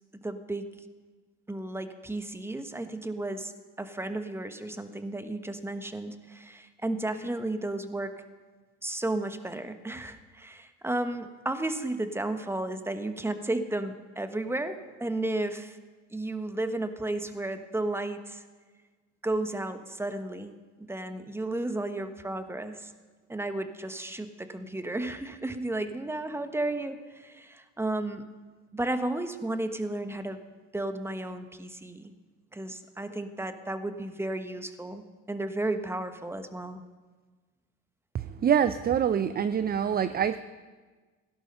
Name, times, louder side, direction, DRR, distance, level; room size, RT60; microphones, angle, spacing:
voice 1, 0.1-0.7 1.5-3.5 3.8-8.1 8.8-15.8 16.1-18.4 19.2-22.9 23.3-28.2 28.7-30.4 30.7-32.1 32.5-36.8, right 2 dB, 5° right, 9 dB, 1.3 m, -33 dB
voice 2, 38.1-40.4, right 8 dB, 25° right, 13 dB, 0.6 m, -25 dB
17.0 x 11.0 x 5.6 m, 1.4 s
hypercardioid pair, 75°, 37 cm